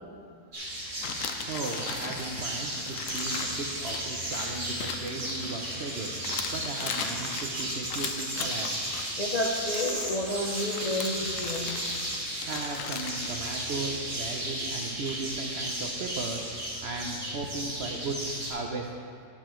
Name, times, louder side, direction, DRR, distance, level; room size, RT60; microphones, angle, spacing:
sound 1, 0.5-18.5, right 1 dB, 85° right, 3.5 m, -34 dB
sound 2, 1.0-5.9 6.2-9.1 9.6-10.2 10.7-13.3, left 7 dB, 65° left, 0.9 m, -38 dB
voice 1, 1.4-8.8 12.1-19.3, right 3 dB, 55° right, 1 dB, 0.7 m, -37 dB
voice 2, 9.2-11.8, left 1 dB, 45° left, -1 dB, 0.5 m, -31 dB
17.0 x 6.7 x 3.1 m, 2.4 s
omnidirectional pair, 1.7 m